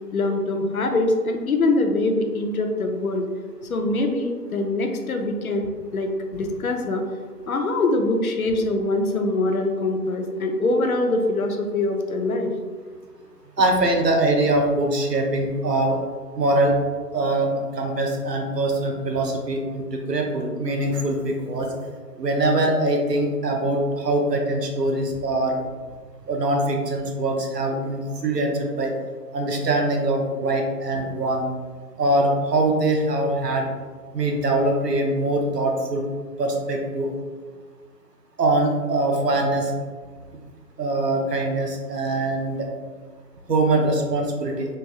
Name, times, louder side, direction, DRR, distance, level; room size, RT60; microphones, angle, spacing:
voice 1, 0.1-3.3 3.7-7.0 7.5-12.5, left 2 dB, 65° left, 4 dB, 0.6 m, -23 dB
voice 2, 13.6-16.0 16.4-16.7 17.1-21.7 22.2-25.5 26.3-28.9 29.3-31.4 32.0-33.7 34.1-36.0 36.4-37.1 38.4-39.7 40.8-42.7 43.5-44.7, right 2 dB, 80° right, 2 dB, 0.9 m, -23 dB
3.4 x 2.6 x 3.2 m, 1.5 s
figure-of-eight pair, 155°, 48 cm